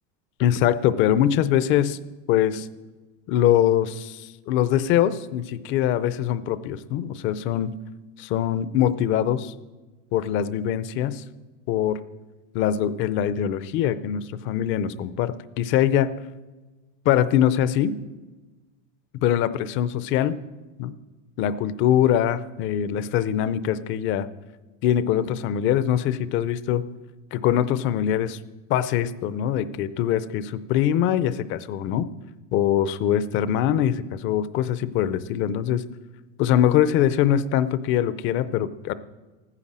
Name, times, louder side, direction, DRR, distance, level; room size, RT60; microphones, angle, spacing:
voice 1, 0.4-2.0 2.3-2.7 3.3-7.7 8.2-9.5 10.1-11.2 11.7-12.0 12.5-16.1 17.1-17.9 19.2-20.4 20.8-20.9 21.4-24.3 24.8-26.8 27.3-28.4 28.7-32.1 32.5-35.8 36.4-38.9, left 10 dB, 30° left, 15 dB, 0.6 m, -23 dB
14.5 x 9.9 x 7.4 m, 1.2 s
supercardioid pair, 160°, 39 cm